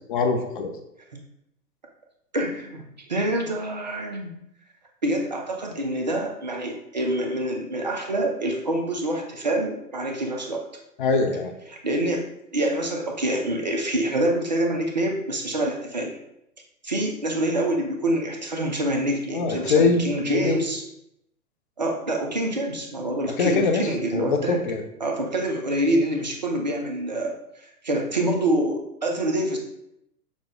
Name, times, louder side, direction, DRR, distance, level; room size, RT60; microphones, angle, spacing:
voice 1, 0.1-0.7 11.0-11.5 19.3-20.0 20.3-20.6 23.3-24.8, left 4 dB, 35° left, 5 dB, 0.5 m, -23 dB
voice 2, 2.3-4.3 5.0-10.7 11.7-12.2 12.5-16.2 16.8-20.8 21.8-24.6 25.0-27.4 27.8-29.6, right 1 dB, 30° right, 2 dB, 0.3 m, -26 dB
6.0 x 2.1 x 3.6 m, 0.80 s
hypercardioid pair, 130°, 49 cm